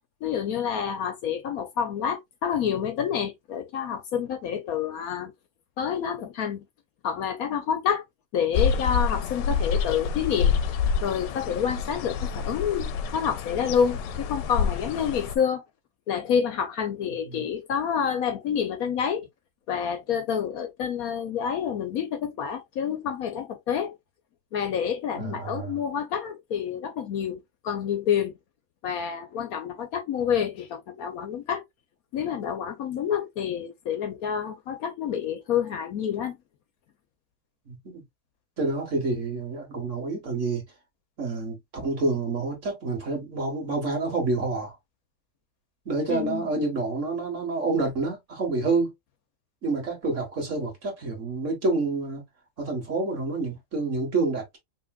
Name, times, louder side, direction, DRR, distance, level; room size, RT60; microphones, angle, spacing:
voice 1, 0.2-5.3 5.8-6.6 7.0-8.0 8.3-10.6 11.0-15.6 16.1-19.3 19.7-23.9 24.5-28.4 28.8-31.6 32.1-36.4 46.1-46.4, left 8 dB, 65° left, 1.0 m, -28 dB
sound 1, 8.5-15.4, left 6 dB, 85° left, 1.3 m, -27 dB
voice 2, 17.0-17.4 25.1-25.7 37.7-38.0 38.6-40.6 41.2-41.6 41.8-44.7 45.8-48.9 49.6-52.2 52.6-54.6, right 3 dB, 45° right, 1.7 m, -28 dB
5.3 x 2.8 x 2.3 m
omnidirectional pair, 1.9 m